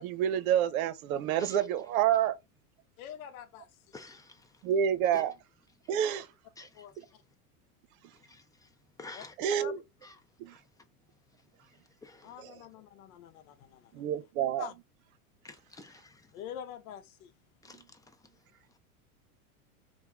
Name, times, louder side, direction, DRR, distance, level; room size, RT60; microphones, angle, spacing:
voice 1, 0.0-2.4 4.6-5.4 5.9-6.3 7.0-7.1 9.4-9.8 10.4-10.6 12.4-12.6 13.9-14.7 17.7-17.8, right 9 dB, 70° right, 0.7 m, -28 dB
voice 2, 3.0-3.7 6.7-7.0 9.1-9.3 9.6-9.7 12.2-14.0 14.6-14.7 16.3-17.3, left 9 dB, 70° left, 0.8 m, -45 dB
voice 3, 3.9-4.3 5.1-5.2 6.6-6.7 9.0-9.3 12.0-12.2 15.4-16.0 17.6-17.8, left 3 dB, 10° left, 0.4 m, -47 dB
3.0 x 2.3 x 3.4 m
hypercardioid pair, 100°, 44 cm